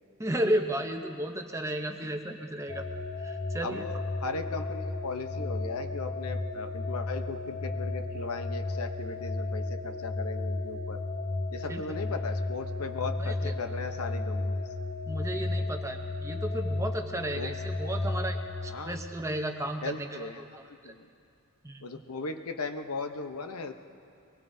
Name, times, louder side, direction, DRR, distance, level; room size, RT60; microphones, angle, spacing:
voice 1, 0.2-2.8 3.2-3.9 11.7-11.8 13.2-13.5 15.1-20.3 20.8-20.9 21.6-22.1, right 1 dB, 15° right, 5 dB, 0.7 m, -33 dB
sound 1, 2.7-18.8, left 2 dB, 30° left, 0.9 m, -33 dB
voice 2, 3.6-11.0 11.5-14.6 17.3-17.6 18.7-19.0 19.8-21.1 21.8-23.7, left 3 dB, 85° left, 7 dB, 0.8 m, -37 dB
23.5 x 19.5 x 2.7 m, 2.5 s
head